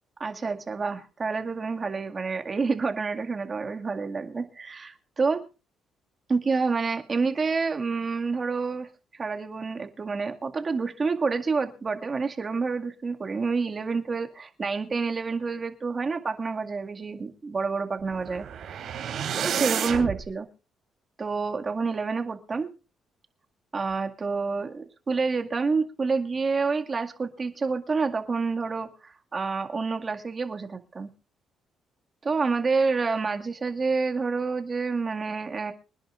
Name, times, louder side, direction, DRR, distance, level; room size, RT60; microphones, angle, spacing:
voice 1, 0.2-5.4 6.3-18.5 19.3-20.5 21.2-22.7 23.7-31.1 32.2-35.7, right 4 dB, 35° right, 4 dB, 2.0 m, -28 dB
sound 1, 18.0-20.2, right 8 dB, 75° right, 3.4 m, -30 dB
26.0 x 10.5 x 2.5 m, 0.32 s
cardioid pair, 90°, 0 cm